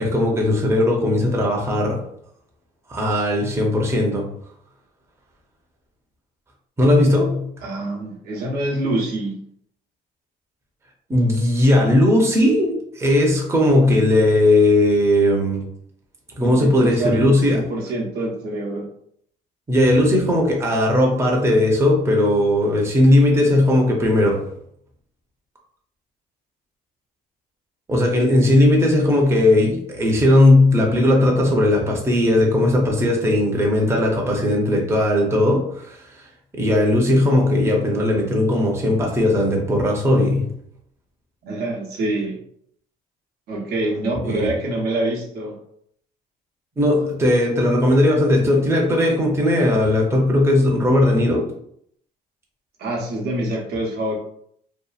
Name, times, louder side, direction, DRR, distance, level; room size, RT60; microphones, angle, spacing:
voice 1, 0.0-2.0 2.9-4.3 6.8-7.5 11.1-15.7 16.4-17.6 19.7-24.5 27.9-36.0 36.6-40.5 44.2-44.5 46.8-51.5, left 1 dB, 15° right, -1 dB, 0.7 m, -17 dB
voice 2, 7.6-9.4 16.4-18.9 41.4-42.4 43.5-45.6 52.8-54.1, right 1 dB, 70° right, -2 dB, 0.8 m, -25 dB
2.8 x 2.3 x 2.4 m, 0.67 s
cardioid pair, 110°, 17 cm